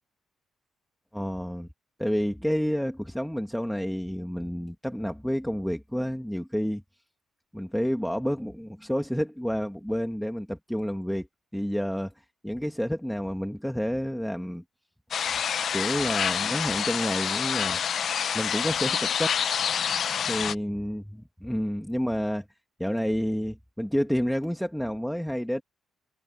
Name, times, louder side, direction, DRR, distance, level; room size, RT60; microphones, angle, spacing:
voice 1, 1.1-1.7 2.0-6.8 7.5-11.3 11.5-12.1 12.4-14.6 15.7-17.8 18.3-19.4 20.3-22.4 22.8-25.6, equal, ahead, 2.0 m, -29 dB
sound 1, 15.1-20.5, left 8 dB, 60° left, 0.6 m, -27 dB
cardioid pair, 90°, 0 cm